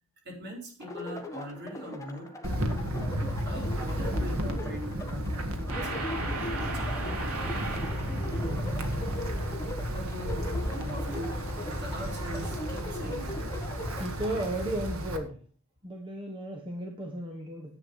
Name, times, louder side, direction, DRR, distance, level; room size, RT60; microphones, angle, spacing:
voice 1, 0.2-2.3 3.4-6.1 6.6-7.3 9.9-10.4 10.7-13.4, equal, 50° right, 0 dB, 4.5 m, -41 dB
sound 1, 0.8-14.5, left 1 dB, 15° left, 1.4 m, -40 dB
Wind, 2.4-15.2, equal, 70° right, 1.7 m, -33 dB
sound 2, 5.7-12.4, right 2 dB, 90° right, 3.2 m, -39 dB
voice 2, 14.0-15.4 15.8-17.8, right 1 dB, 25° right, 2 dB, 1.4 m, -35 dB
10.5 x 8.0 x 5.6 m, 0.41 s
head